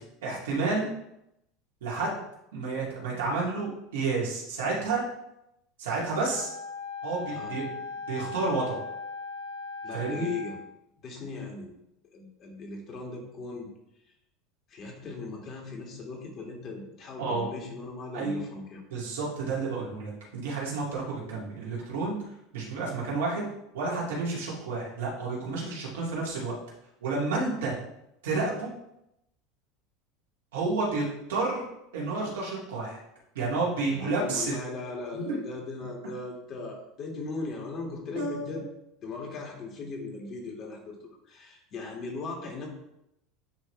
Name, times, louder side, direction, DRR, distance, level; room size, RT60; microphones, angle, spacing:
voice 1, 0.2-0.9 1.8-2.2 2.5-5.0 5.8-6.5 7.0-7.7 8.1-8.8 9.9-10.3 17.2-17.5 18.1-18.4 18.9-22.2 22.5-23.5 23.7-26.6 27.0-27.7 28.2-28.7 30.5-31.6 31.9-33.0 33.3-34.5 35.1-35.3 38.2-38.6, right 3 dB, 85° right, -5 dB, 2.4 m, -30 dB
Wind instrument woodwind instrument, 6.3-10.7, left 4 dB, 75° left, 2.4 m, -38 dB
voice 2, 9.8-10.6 11.0-11.7 12.1-13.7 14.7-18.8 33.9-38.7 39.0-42.7, left 3 dB, 45° left, 0 dB, 2.0 m, -38 dB
9.5 x 3.2 x 3.3 m, 0.83 s
hypercardioid pair, 95°, 0 cm